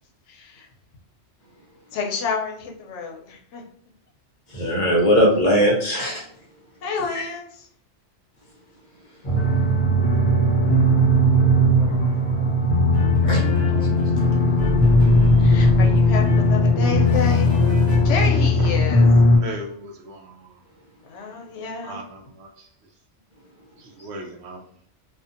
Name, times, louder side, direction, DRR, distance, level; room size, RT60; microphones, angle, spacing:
voice 1, 0.3-0.7 1.9-3.6 6.8-7.4 15.4-17.5 18.0-19.1 21.1-22.0, left 5 dB, 80° left, 1 dB, 0.9 m, -29 dB
voice 2, 4.5-6.2 7.1-7.2 13.2-13.4 15.6-15.7, equal, 45° left, -2 dB, 0.7 m, -19 dB
sound 1, 9.2-19.4, left 1 dB, 25° left, 1.1 m, -18 dB
sound 2, 12.9-18.7, equal, 5° right, 0.8 m, -31 dB
voice 3, 19.4-20.3 21.8-22.5 24.0-24.6, right 1 dB, 70° right, 2 dB, 0.8 m, -36 dB
2.5 x 2.4 x 2.5 m, 0.62 s
omnidirectional pair, 1.2 m